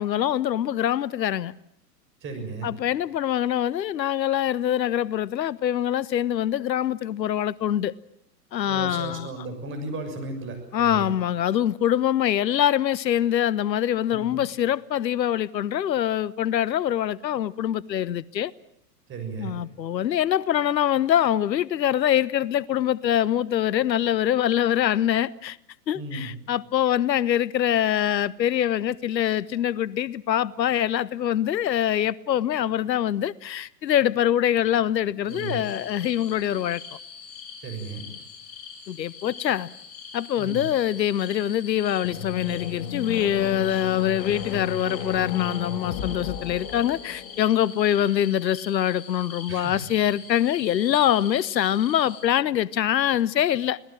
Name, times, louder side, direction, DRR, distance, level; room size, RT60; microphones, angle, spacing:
voice 1, 0.0-1.5 2.6-7.9 8.5-9.3 10.7-18.5 19.4-25.6 25.9-36.8 38.9-39.7 40.1-53.8, left 11 dB, 80° left, 0.9 m, -24 dB
voice 2, 2.2-2.7 8.6-11.1 14.1-14.4 19.1-19.6 25.9-26.3 35.3-35.6 37.6-38.0 40.4-40.6 49.5-49.8, right 3 dB, 25° right, 6.5 m, -35 dB
sound 1, 35.3-52.2, left 6 dB, 30° left, 7.7 m, -43 dB
sound 2, 41.9-47.6, left 8 dB, 45° left, 2.7 m, -33 dB
26.0 x 18.0 x 8.9 m
hypercardioid pair, 120°, 50 cm